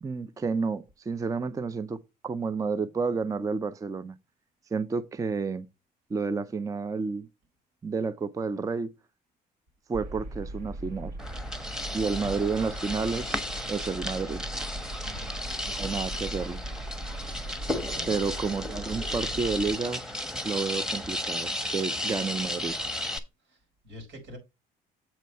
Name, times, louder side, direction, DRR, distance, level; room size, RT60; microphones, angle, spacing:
voice 1, 0.0-4.2 4.7-5.7 6.1-7.3 7.8-8.9 9.9-11.1 11.9-13.4 13.7-14.4 15.8-16.6 18.1-20.0 20.4-22.8, right 4 dB, 20° right, 0.5 m, -30 dB
sound 1, 9.9-19.8, right 1 dB, 60° right, 2.9 m, -39 dB
sound 2, 11.2-23.2, left 1 dB, 5° right, 1.1 m, -34 dB
voice 2, 15.0-15.3 17.9-18.2 23.5-23.6 23.8-24.4, equal, 80° right, 4.5 m, -44 dB
7.6 x 4.3 x 5.4 m
cardioid pair, 110°, 17 cm